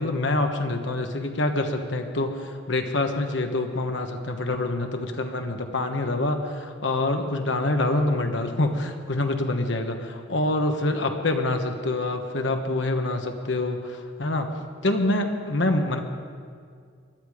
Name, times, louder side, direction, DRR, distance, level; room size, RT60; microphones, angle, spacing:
voice 1, 0.0-14.5 14.8-16.0, left 2 dB, 65° left, 5 dB, 1.3 m, -26 dB
19.5 x 12.0 x 5.0 m, 2.1 s
head